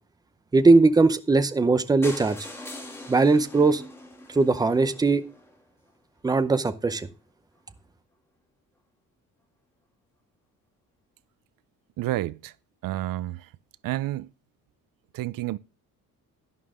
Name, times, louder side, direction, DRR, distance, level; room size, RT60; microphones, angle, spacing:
voice 1, 0.5-2.4 3.1-3.8 4.3-5.2 6.2-7.1, right 3 dB, 10° right, 0.6 m, -20 dB
sound 1, 2.0-5.9 6.6-6.7 6.9-7.0 7.3-7.4 7.6-7.7, left 1 dB, 5° left, 2.5 m, -42 dB
voice 2, 12.0-12.5 12.8-13.5 13.8-14.3 15.1-15.6, right 15 dB, 80° right, 0.6 m, -29 dB
11.5 x 11.0 x 3.6 m
cardioid pair, 175°, 33 cm